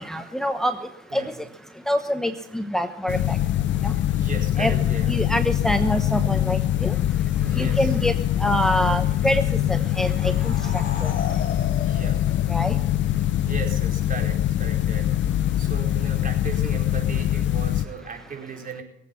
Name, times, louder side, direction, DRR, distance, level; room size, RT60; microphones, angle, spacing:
voice 1, 0.1-0.7 1.1-1.2 1.9-3.4 3.8-3.9 4.6-4.7 5.1-6.9 7.6-8.1 8.4-9.4 9.7-10.5 11.0-11.1 12.5-12.7, equal, ahead, 7 dB, 1.0 m, -25 dB
sound 1, 3.1-17.8, left 12 dB, 70° left, 0.6 m, -23 dB
voice 2, 4.1-5.2 7.4-8.0 11.8-12.3 13.1-18.8, right 5 dB, 45° right, 2 dB, 4.6 m, -37 dB
sound 2, 9.6-13.1, left 6 dB, 50° left, 5.2 m, -36 dB
22.5 x 8.3 x 7.1 m, 0.82 s
cardioid pair, 90°, 20 cm